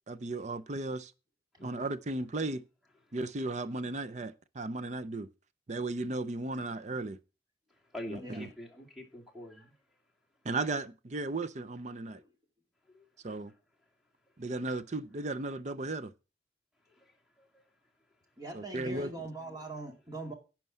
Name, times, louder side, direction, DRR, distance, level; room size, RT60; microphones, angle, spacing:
voice 1, 0.1-1.1 1.6-2.6 3.1-5.3 5.7-7.2 8.1-8.5 10.4-12.2 13.2-13.5 14.4-16.1 18.5-19.1, right 2 dB, 40° right, 0.6 m, -35 dB
voice 2, 1.6-1.9 7.7-9.7 12.9-13.4 16.9-17.7, left 1 dB, ahead, 2.5 m, -47 dB
voice 3, 18.4-20.3, right 2 dB, 20° right, 2.1 m, -42 dB
11.0 x 4.6 x 7.5 m
head